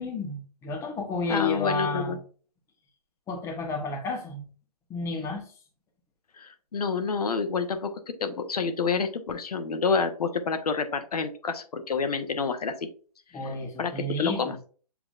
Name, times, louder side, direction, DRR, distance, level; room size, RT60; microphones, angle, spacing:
voice 1, 0.0-2.2 3.3-4.5 4.9-5.5 13.3-14.5, left 3 dB, 15° left, 2 dB, 0.9 m, -31 dB
voice 2, 1.3-2.2 6.4-12.9 13.8-14.6, left 5 dB, 75° left, 8 dB, 0.9 m, -28 dB
7.0 x 2.9 x 2.4 m, 0.40 s
hypercardioid pair, 135°, 20 cm